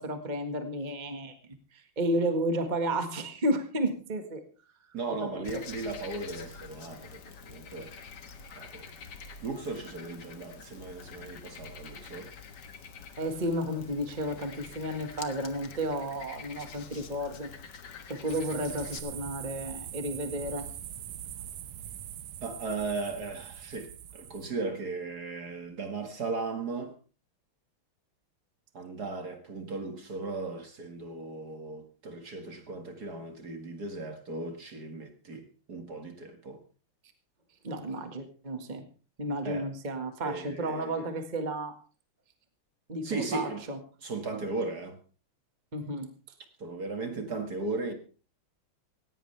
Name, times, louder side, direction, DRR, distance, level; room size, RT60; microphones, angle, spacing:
voice 1, 0.0-1.3 1.7-4.4 5.2-5.6 13.2-17.5 18.1-20.7 37.6-38.9 39.2-41.7 42.9-43.8 45.7-46.1, right 1 dB, 20° right, 1.7 m, -32 dB
voice 2, 4.9-7.9 8.6-8.9 9.4-12.3 22.4-26.9 28.7-36.6 39.4-39.7 40.2-41.1 43.0-43.6 44.0-45.0 46.6-47.9, right 3 dB, 45° right, 2.4 m, -37 dB
Frog, 5.4-19.0, left 5 dB, 55° left, 2.0 m, -46 dB
sound 1, 18.3-24.5, right 10 dB, 75° right, 1.8 m, -42 dB
18.0 x 16.5 x 3.4 m
omnidirectional pair, 2.4 m